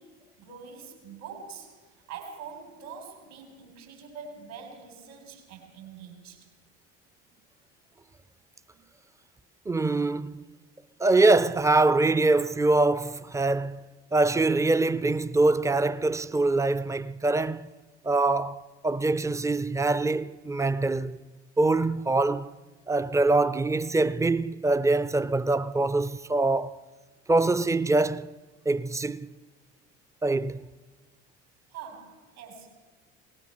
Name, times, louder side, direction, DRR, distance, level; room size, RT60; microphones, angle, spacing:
voice 1, 0.0-6.5 31.7-32.9, right 6 dB, 75° right, 3.6 m, -44 dB
voice 2, 9.7-10.4 11.0-17.7 18.0-21.2 21.6-22.5 22.9-26.8 27.3-28.3 28.7-29.3 30.2-30.6, right 2 dB, 10° right, 0.4 m, -24 dB
18.0 x 18.0 x 4.3 m
hypercardioid pair, 65°, 36 cm